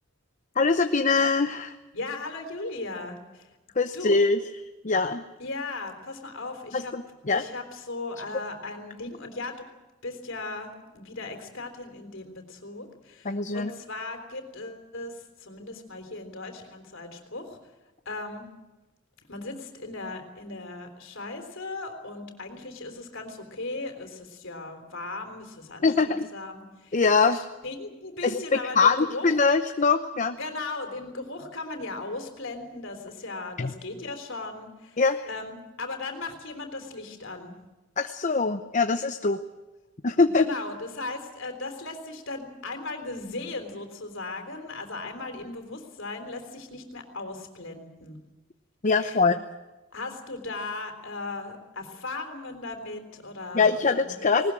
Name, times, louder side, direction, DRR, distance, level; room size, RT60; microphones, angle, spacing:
voice 1, 0.6-1.8 3.8-4.4 4.8-5.2 6.7-7.4 13.2-13.7 25.8-26.3 26.9-27.4 28.2-30.4 33.6-33.7 35.0-35.2 38.0-39.4 40.0-40.5 48.8-49.4 53.5-54.5, left 4 dB, 40° left, 8 dB, 0.8 m, -23 dB
voice 2, 1.9-3.5 3.9-4.2 5.4-6.9 7.3-9.6 10.0-17.6 18.1-18.4 19.3-27.0 27.3-29.3 30.3-37.5 40.3-48.2 49.0-49.2 49.9-54.3, left 2 dB, 65° left, 5 dB, 3.7 m, -37 dB
19.5 x 19.5 x 8.9 m, 1.1 s
head